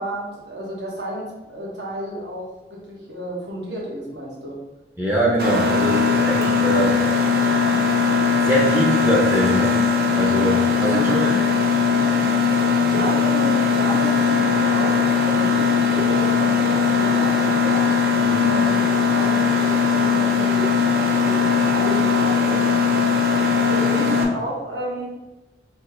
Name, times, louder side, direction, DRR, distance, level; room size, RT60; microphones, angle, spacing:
voice 1, 0.0-4.6 10.9-11.4 12.8-17.8 18.4-22.8 23.7-25.1, right 1 dB, 85° right, -4 dB, 1.3 m, -31 dB
voice 2, 5.0-7.0 8.4-9.8 10.2-11.4 18.2-18.6, right 1 dB, 10° right, -4 dB, 0.6 m, -22 dB
Mechanisms, 5.4-24.2, left 5 dB, 55° right, 0.6 m, -19 dB
3.2 x 2.8 x 3.9 m, 1.0 s
head